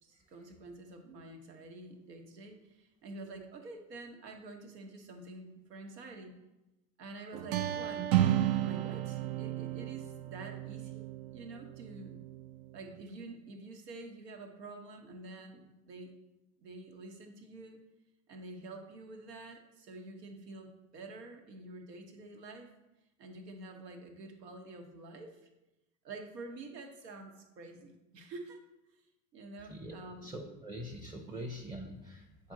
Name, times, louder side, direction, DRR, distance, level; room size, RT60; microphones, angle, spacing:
voice 1, 0.0-6.4 7.0-8.1 8.6-12.2 12.7-16.1 16.6-17.8 18.3-22.7 23.2-25.4 26.0-28.6 28.9-29.0 29.3-30.3 31.3-31.4, right 2 dB, 75° right, 4 dB, 1.2 m, -48 dB
sound 1, 7.3-13.0, right 12 dB, 45° right, 0.5 m, -33 dB
voice 2, 29.7-32.5, equal, 10° right, 1 dB, 0.7 m, -44 dB
7.7 x 4.2 x 3.7 m, 0.96 s
hypercardioid pair, 75°, 49 cm